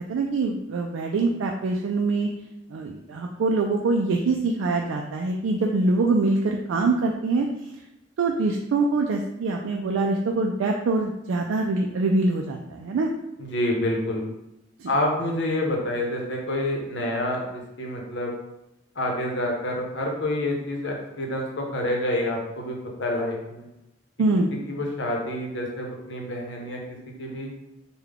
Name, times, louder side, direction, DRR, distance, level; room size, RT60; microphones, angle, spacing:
voice 1, 0.1-2.3 2.7-7.7 8.2-13.1 14.8-14.9 24.2-24.5, right 3 dB, 90° right, 1 dB, 0.3 m, -24 dB
voice 2, 13.4-14.3 14.9-18.3 19.0-23.7 24.7-26.8 27.2-27.5, left 1 dB, 65° left, 0 dB, 0.8 m, -28 dB
3.5 x 2.2 x 3.5 m, 0.88 s
head